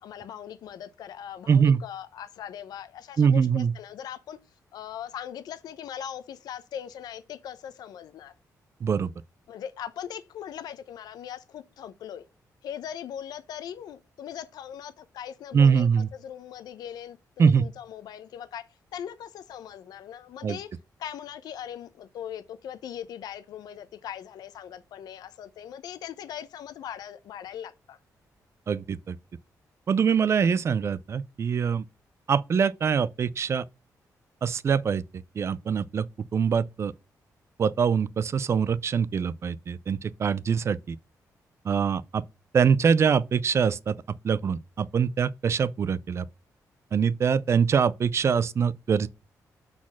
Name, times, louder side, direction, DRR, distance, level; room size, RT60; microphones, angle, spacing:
voice 1, 0.0-4.4 4.7-8.3 9.5-12.2 12.6-18.7 18.9-20.7 21.0-28.0, left 9 dB, 90° left, 0.7 m, -40 dB
voice 2, 1.5-1.8 3.2-3.7 8.8-9.1 15.5-16.1 17.4-17.6 20.4-20.6 28.7-29.2 29.9-31.8 32.3-33.6 34.4-35.0 35.4-36.1 36.3-36.9 37.6-41.0 41.6-42.2 42.5-44.0 44.2-46.2 46.9-49.1, right 6 dB, 45° right, 0.4 m, -23 dB
6.1 x 4.2 x 6.1 m
cardioid pair, 115°, 7 cm